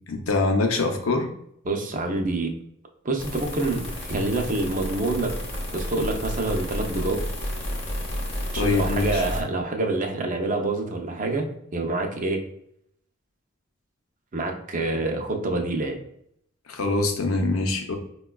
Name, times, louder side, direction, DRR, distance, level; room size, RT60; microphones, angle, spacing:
voice 1, 0.1-1.3 8.5-9.2 16.7-18.0, left 3 dB, 90° left, 4 dB, 0.6 m, -24 dB
voice 2, 1.6-2.5 3.0-5.3 5.7-7.2 8.5-12.4 14.3-16.0, right 2 dB, 40° right, 3 dB, 0.5 m, -26 dB
sound 1, 3.2-9.4, equal, 30° left, 0.7 m, -31 dB
4.6 x 2.2 x 2.2 m, 0.72 s
head